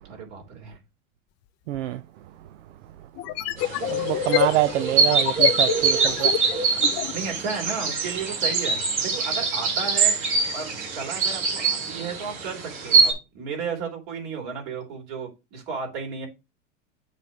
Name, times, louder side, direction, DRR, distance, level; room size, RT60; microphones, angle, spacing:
voice 1, 0.0-0.8 7.1-10.1 10.5-16.3, right 5 dB, 55° right, 3.5 m, -33 dB
voice 2, 1.7-2.0 3.8-6.4, right 15 dB, 75° right, 0.6 m, -26 dB
sound 1, 1.8-1.9 3.2-7.2, left 14 dB, 40° left, 0.7 m, -27 dB
sound 2, 3.6-13.1, right 4 dB, 35° right, 4.1 m, -23 dB
7.5 x 3.2 x 6.2 m
hypercardioid pair, 115°, 37 cm